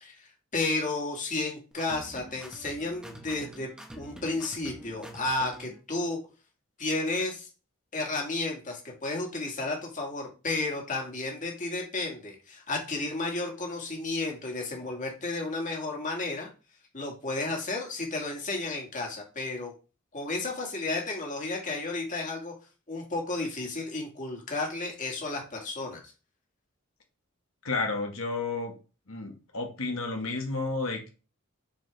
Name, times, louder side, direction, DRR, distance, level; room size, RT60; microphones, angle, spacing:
voice 1, 0.0-3.7 4.0-6.2 6.8-7.5 7.9-16.5 16.9-19.7 20.1-22.5 22.9-26.0, left 2 dB, 35° left, 0 dB, 2.1 m, -32 dB
sound 1, 1.7-5.8, right 1 dB, 5° right, 1.3 m, -46 dB
voice 2, 27.6-28.7 29.1-31.1, left 3 dB, 75° left, 2 dB, 1.8 m, -31 dB
7.4 x 4.7 x 3.5 m, 0.33 s
head